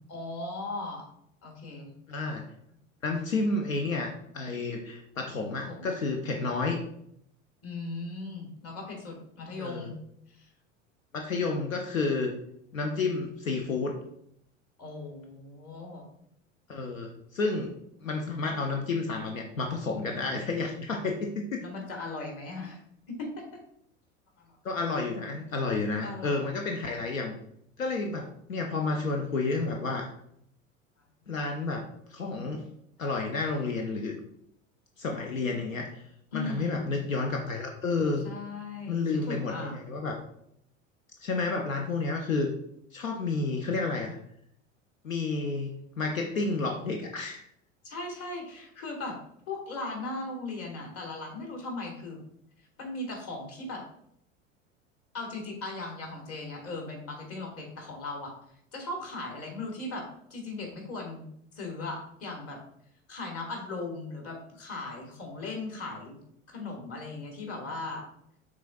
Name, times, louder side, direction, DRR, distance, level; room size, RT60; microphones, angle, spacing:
voice 1, 0.1-1.1 1.4-1.9 5.7-5.9 7.6-9.9 10.4-10.5 14.8-16.0 21.6-22.8 23.1-23.4 24.4-24.6 26.0-26.6 36.3-36.8 38.2-39.7 47.8-49.2 49.5-52.2 52.8-53.8 55.1-58.3 58.7-61.3 61.5-62.6 63.1-66.2 66.5-68.0, left 2 dB, 35° left, 1 dB, 1.6 m, -38 dB
voice 2, 2.1-2.5 3.0-6.8 9.6-9.9 11.1-12.3 12.7-14.0 16.7-17.7 18.0-21.6 24.6-27.3 27.8-30.1 31.3-32.6 33.0-34.2 35.0-36.0 36.3-38.3 38.9-40.1 41.2-42.5 42.9-44.2 45.0-47.5, left 3 dB, 85° left, 2 dB, 0.7 m, -30 dB
6.1 x 3.7 x 2.3 m, 0.72 s
figure-of-eight pair, 80°, 39 cm